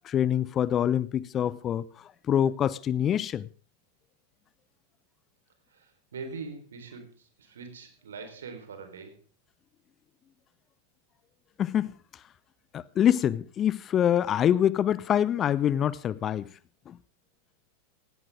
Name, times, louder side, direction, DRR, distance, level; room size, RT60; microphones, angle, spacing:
voice 1, 0.0-3.5 11.6-12.2 12.7-16.5 16.9-17.0, left 10 dB, 25° left, 0.7 m, -25 dB
voice 2, 5.7-9.2, right 4 dB, 65° right, 4.1 m, -42 dB
17.5 x 16.5 x 3.6 m
figure-of-eight pair, 90°, 0 cm